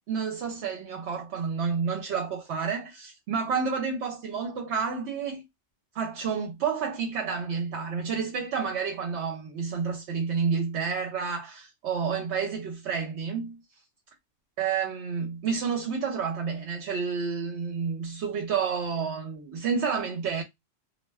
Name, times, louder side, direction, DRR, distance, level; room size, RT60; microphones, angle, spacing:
voice 1, 0.1-5.4 5.9-13.6 14.6-20.4, right 6 dB, 70° right, 0.8 m, -30 dB
2.3 x 2.1 x 3.2 m
omnidirectional pair, 1.2 m